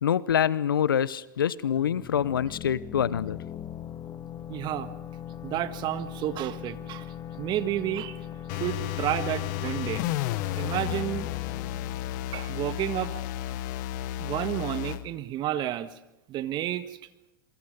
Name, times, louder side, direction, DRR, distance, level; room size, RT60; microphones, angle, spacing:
voice 1, 0.0-3.4, left 9 dB, 80° left, 20 dB, 0.7 m, -25 dB
sound 1, 1.8-13.3, left 9 dB, 35° left, 1.5 m, -40 dB
voice 2, 4.5-4.9 5.4-7.1 7.4-8.2 8.5-10.0 10.6-11.3 12.3-13.1 14.2-15.9 16.3-16.8, right 12 dB, 40° right, 12 dB, 1.6 m, -31 dB
sound 2, 8.5-15.0, left 14 dB, 60° left, 1.2 m, -32 dB
27.0 x 23.5 x 5.3 m, 0.96 s
hypercardioid pair, 95°, 11 cm